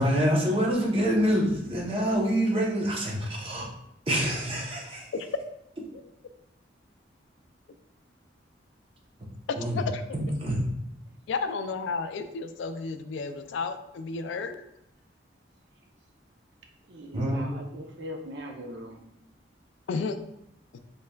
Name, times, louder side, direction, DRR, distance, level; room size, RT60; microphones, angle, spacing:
voice 1, 0.0-3.7 4.1-5.1 9.6-9.8 10.1-10.6 17.1-17.5, equal, 30° right, -2 dB, 0.7 m, -26 dB
voice 2, 9.5-10.0 11.3-14.6 19.9-20.1 20.7-20.8, left 4 dB, 75° left, 9 dB, 0.3 m, -32 dB
voice 3, 16.9-19.0, equal, 65° right, 2 dB, 0.5 m, -40 dB
4.0 x 3.2 x 2.2 m, 0.79 s
head